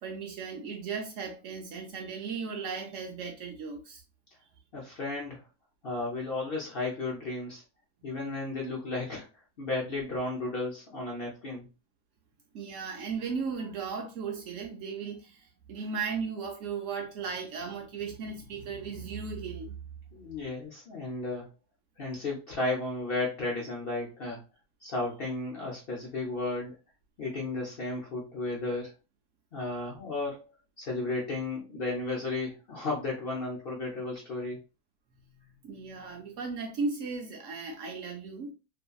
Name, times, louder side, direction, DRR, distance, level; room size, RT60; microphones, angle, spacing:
voice 1, 0.0-4.0 12.5-19.8 29.6-29.7 35.2-38.5, right 5 dB, 70° right, 0.8 m, -36 dB
voice 2, 4.7-5.4 5.8-7.6 8.0-9.3 9.6-11.6 20.1-21.5 22.0-24.4 24.8-26.7 27.2-28.9 29.5-30.4 30.8-34.6, left 2 dB, 50° left, 0.7 m, -34 dB
2.7 x 2.5 x 2.2 m
omnidirectional pair, 1.6 m